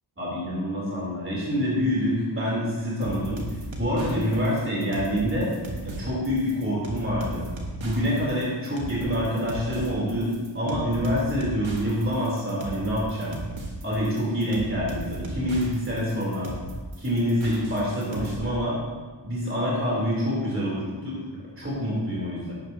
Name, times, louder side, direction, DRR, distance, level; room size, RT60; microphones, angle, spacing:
voice 1, 0.2-3.4 3.8-5.5 5.8-7.4 7.8-10.3 10.5-13.4 13.8-16.5 17.0-18.8 19.2-22.5, equal, 25° right, -6 dB, 3.6 m, -26 dB
sound 1, 3.0-18.4, right 1 dB, 90° right, 1.6 m, -37 dB
11.5 x 10.5 x 2.9 m, 1.4 s
cardioid pair, 50°, 46 cm